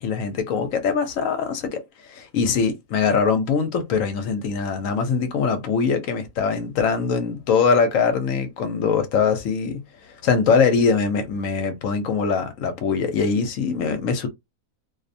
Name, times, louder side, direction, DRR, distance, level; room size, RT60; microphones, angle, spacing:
voice 1, 0.0-1.8 2.1-9.8 10.2-14.3, left 5 dB, 70° left, 0.9 m, -22 dB
2.5 x 2.1 x 2.5 m
omnidirectional pair, 1.6 m